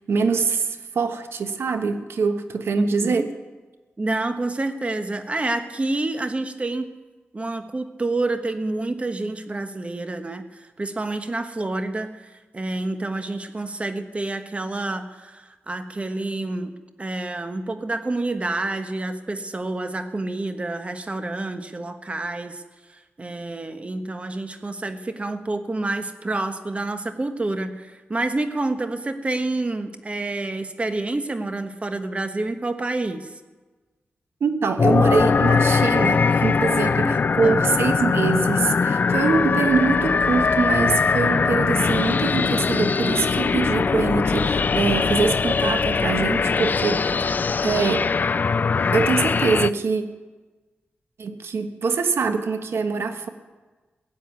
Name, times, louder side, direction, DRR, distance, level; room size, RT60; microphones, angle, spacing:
voice 1, 0.1-3.2 34.4-47.2 47.6-48.1 48.9-50.0 51.2-53.3, right 4 dB, 75° right, 8 dB, 1.3 m, -24 dB
voice 2, 2.7-3.2 4.0-6.9 7.3-16.7 17.0-22.6 22.9-33.3 36.9-37.7, right 2 dB, 30° right, 8 dB, 1.2 m, -28 dB
sound 1, 34.8-49.7, left 5 dB, 45° left, 0.4 m, -21 dB
16.0 x 7.7 x 9.3 m, 1.3 s
cardioid pair, 80°, 4 cm